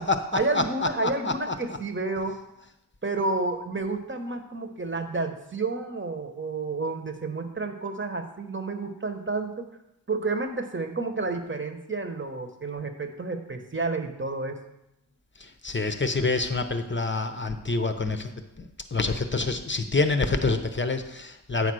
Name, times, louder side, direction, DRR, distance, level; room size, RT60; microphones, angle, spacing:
voice 1, 0.3-2.4 3.0-9.7 10.1-14.6, right 3 dB, 30° right, 5 dB, 1.1 m, -30 dB
voice 2, 1.0-1.5 15.4-18.3 18.6-21.7, left 3 dB, 25° left, 7 dB, 0.8 m, -27 dB
8.5 x 3.9 x 6.2 m, 0.88 s
cardioid pair, 45°, 42 cm